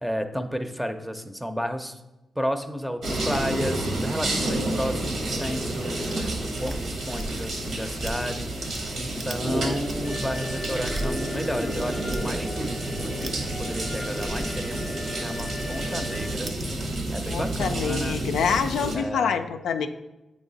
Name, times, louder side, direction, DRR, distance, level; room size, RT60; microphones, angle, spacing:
voice 1, 0.0-2.0 2.4-16.5 17.1-18.2 18.9-19.4, equal, 5° right, 8 dB, 0.6 m, -32 dB
sound 1, 3.0-19.0, right 1 dB, 70° right, 1.1 m, -30 dB
sound 2, 3.3-5.7 6.1-6.3 6.5-8.9 9.2-9.5 9.8-16.7, right 1 dB, 50° right, 0.8 m, -38 dB
Alarm, 10.0-16.3, left 2 dB, 35° left, 0.7 m, -39 dB
voice 2, 17.3-19.9, left 6 dB, 85° left, 7 dB, 0.3 m, -26 dB
7.8 x 3.1 x 3.9 m, 0.99 s
cardioid pair, 55°, 0 cm